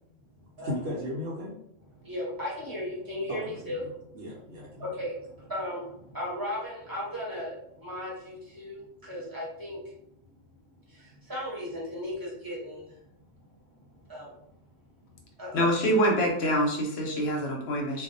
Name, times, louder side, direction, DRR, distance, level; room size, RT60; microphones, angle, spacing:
voice 1, 0.6-1.5 3.3-4.9, equal, 80° right, -6 dB, 1.0 m, -36 dB
voice 2, 2.0-3.8 4.8-9.8 10.9-12.9 14.1-14.3 15.4-15.8, left 1 dB, 20° right, -6 dB, 0.8 m, -36 dB
voice 3, 15.5-18.0, equal, 65° left, 0 dB, 0.8 m, -25 dB
2.4 x 2.0 x 2.5 m, 0.74 s
omnidirectional pair, 1.3 m